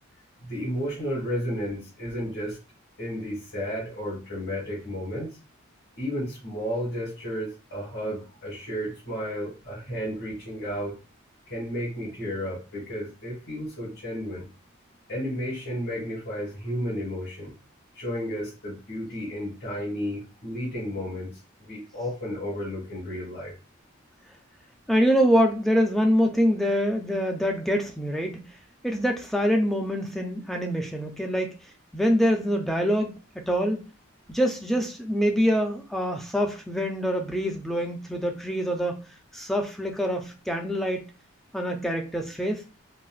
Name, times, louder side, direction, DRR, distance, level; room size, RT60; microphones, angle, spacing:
voice 1, 0.4-2.6 3.0-5.3 6.0-10.9 11.5-14.5 15.1-17.5 17.9-21.3 21.6-23.5, equal, 50° left, -9 dB, 1.5 m, -32 dB
voice 2, 24.9-28.6 28.8-31.6 31.9-33.8 34.3-39.1 39.3-41.1 41.5-42.6, equal, ahead, 2 dB, 0.3 m, -25 dB
4.0 x 2.0 x 2.4 m, 0.32 s
head